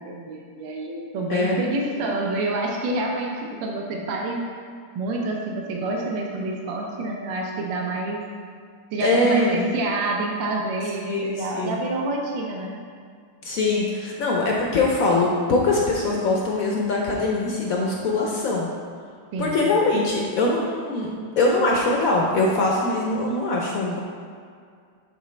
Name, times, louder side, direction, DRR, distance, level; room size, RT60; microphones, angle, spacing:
voice 1, 0.0-3.3 3.6-4.4 4.9-8.2 8.9-12.8 19.3-19.7, right 2 dB, 65° right, 0 dB, 1.5 m, -28 dB
voice 2, 9.0-9.6 11.0-11.8 13.4-18.7 19.4-21.1 21.4-24.0, left 2 dB, 70° left, -2 dB, 0.8 m, -22 dB
11.0 x 3.8 x 3.2 m, 2.2 s
omnidirectional pair, 2.3 m